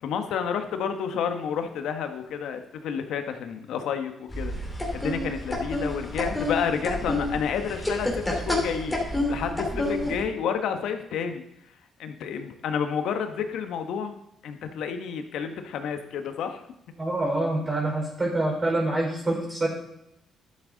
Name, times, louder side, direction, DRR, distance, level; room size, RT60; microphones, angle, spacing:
voice 1, 0.0-4.5 4.9-11.4 12.0-14.2 14.4-16.6, left 7 dB, 80° left, 7 dB, 1.1 m, -30 dB
sound 1, 4.3-10.2, left 1 dB, 10° left, 2.9 m, -29 dB
voice 2, 17.0-19.7, right 2 dB, 25° right, -2 dB, 4.5 m, -26 dB
11.5 x 7.6 x 3.9 m, 0.82 s
cardioid pair, 90°, 0 cm